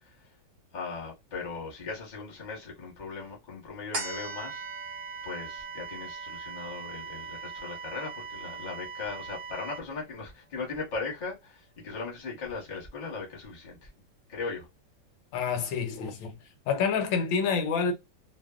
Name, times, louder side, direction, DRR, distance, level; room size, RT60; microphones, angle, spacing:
voice 1, 0.7-4.6 5.2-13.9 14.3-14.7, left 4 dB, 35° left, 0.7 m, -38 dB
sound 1, 3.9-10.7 11.1-11.2, right 3 dB, 70° right, 0.5 m, -44 dB
sound 2, 3.9-9.8, right 5 dB, 90° right, 1.4 m, -41 dB
voice 2, 15.3-16.4 16.7-17.9, left 6 dB, 75° left, 1.3 m, -27 dB
3.3 x 2.1 x 2.3 m
omnidirectional pair, 2.2 m